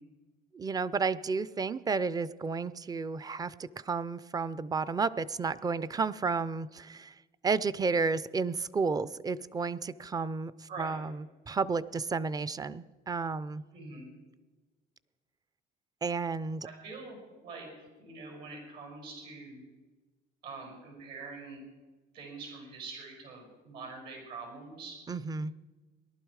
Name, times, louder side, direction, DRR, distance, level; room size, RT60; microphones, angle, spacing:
voice 1, 0.5-7.2 7.4-13.6 16.0-16.7 25.1-25.5, right 4 dB, 20° right, 17 dB, 0.5 m, -32 dB
voice 2, 10.7-11.0 13.7-14.1 16.6-19.6 20.4-21.6 22.1-25.0, right 3 dB, 70° right, 1 dB, 5.5 m, -44 dB
18.5 x 12.0 x 4.8 m, 1.3 s
cardioid pair, 110°, 17 cm